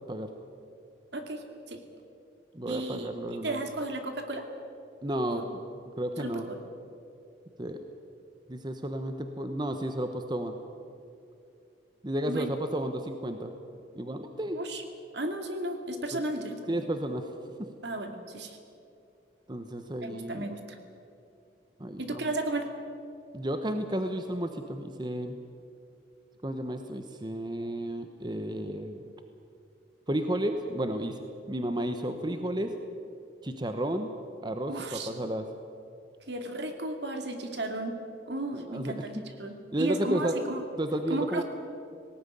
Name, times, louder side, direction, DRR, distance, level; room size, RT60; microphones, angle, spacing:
voice 1, 1.1-1.8 2.7-3.1 3.4-4.4 5.3-5.4 6.2-6.6 12.3-12.5 14.5-14.8 15.1-16.6 17.8-18.6 20.0-20.8 22.0-22.7 34.7-35.1 36.3-38.0 38.3-39.1 39.4-40.6 41.1-41.4, right 2 dB, 65° right, 5 dB, 2.5 m, -34 dB
voice 2, 2.5-3.7 5.0-5.6 6.0-6.5 7.6-7.8 8.5-10.5 12.0-13.5 13.9-14.6 16.1-16.2 16.7-17.3 17.6-17.7 19.5-20.4 21.8-22.2 23.3-25.3 26.4-29.1 30.1-32.7 33.4-34.1 34.4-35.5 38.5-39.2 39.7-40.4 40.8-41.4, right 1 dB, 25° right, 7 dB, 1.0 m, -32 dB
18.5 x 18.5 x 9.9 m, 2.6 s
head